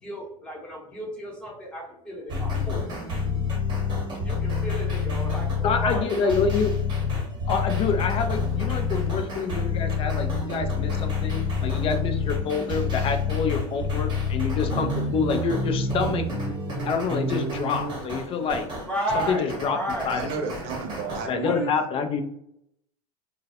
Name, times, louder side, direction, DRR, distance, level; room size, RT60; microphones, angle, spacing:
voice 1, 0.0-2.9 4.2-6.4 7.2-7.3 18.9-20.1 21.4-21.7, right 1 dB, 5° left, -3 dB, 0.8 m, -33 dB
sound 1, 2.3-21.3, left 4 dB, 25° right, 0.9 m, -28 dB
voice 2, 5.6-6.7 7.5-16.3 16.9-18.7 19.1-19.8 20.1-20.5 21.3-22.2, left 5 dB, 30° left, 6 dB, 0.3 m, -27 dB
voice 3, 20.1-21.5, right 5 dB, 50° right, 4 dB, 0.6 m, -32 dB
2.2 x 2.0 x 2.7 m, 0.75 s
supercardioid pair, 115°, 19 cm